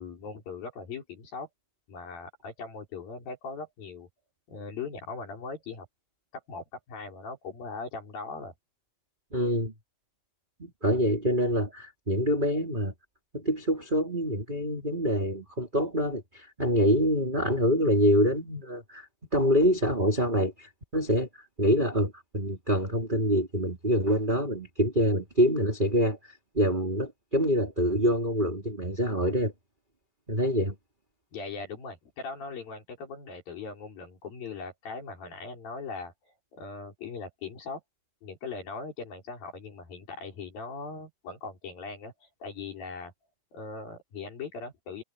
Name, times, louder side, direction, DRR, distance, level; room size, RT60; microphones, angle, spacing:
voice 1, 0.0-1.5 1.9-4.1 4.5-5.9 6.3-8.5 31.3-37.8 38.2-43.1 43.5-45.0, left 4 dB, 60° left, 6.2 m, -40 dB
voice 2, 9.3-9.7 10.8-12.9 13.3-21.3 21.6-26.2 26.5-29.5 30.3-30.7, equal, 10° right, 3.5 m, -26 dB
omnidirectional pair, 4.7 m